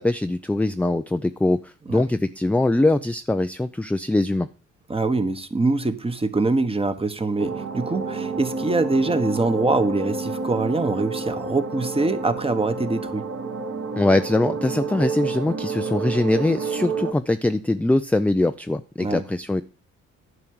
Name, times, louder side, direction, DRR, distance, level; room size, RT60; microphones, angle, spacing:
voice 1, 0.0-4.5 14.0-19.6, left 2 dB, 5° left, 0.4 m, -22 dB
voice 2, 4.9-13.3 19.0-19.2, right 3 dB, 20° right, 1.2 m, -24 dB
sound 1, 7.4-17.1, right 4 dB, 45° right, 1.7 m, -29 dB
11.0 x 4.5 x 7.9 m
cardioid pair, 90°, 30 cm